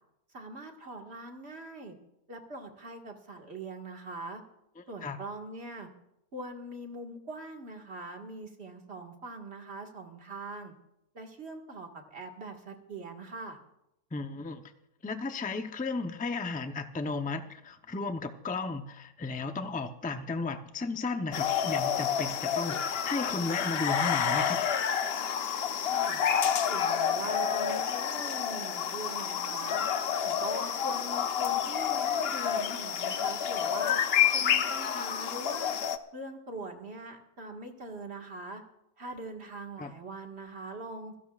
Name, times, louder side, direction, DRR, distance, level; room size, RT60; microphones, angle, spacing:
voice 1, 0.3-1.9 2.3-4.4 4.9-5.9 6.3-10.7 11.1-13.6 25.8-26.2 26.7-29.8 30.2-34.0 34.3-35.8 36.1-38.6 39.0-41.1, right 2 dB, 40° right, 2 dB, 2.0 m, -42 dB
voice 2, 14.1-14.6 15.0-24.6 39.8-39.9, left 3 dB, 15° left, 7 dB, 0.3 m, -34 dB
sound 1, 21.3-36.0, left 8 dB, 55° left, 0.7 m, -29 dB
25.5 x 16.5 x 2.5 m, 0.82 s
omnidirectional pair, 1.7 m